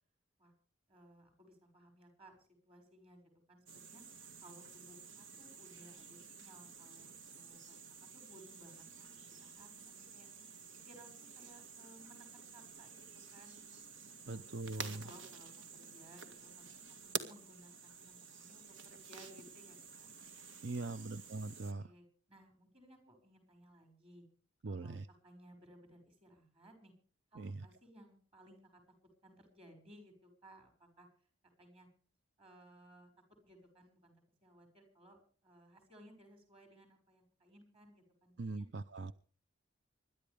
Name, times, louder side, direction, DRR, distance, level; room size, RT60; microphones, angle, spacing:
voice 1, 0.9-3.2 3.5-4.0 4.4-9.7 10.1-10.3 10.9-13.8 14.3-20.1 20.7-21.1 21.6-24.2 24.7-26.9 27.3-28.8 29.2-31.1 31.6-31.9 32.4-33.1 33.4-34.2 34.4-38.7, right 1 dB, 30° right, 6 dB, 6.1 m, -61 dB
sound 1, 3.7-21.7, right 5 dB, 90° right, 2.0 m, -50 dB
voice 2, 14.3-15.0 20.6-21.9 24.6-25.1 27.4-27.6 38.4-39.1, right 3 dB, 65° right, 13 dB, 0.6 m, -41 dB
26.0 x 12.0 x 3.5 m, 0.41 s
head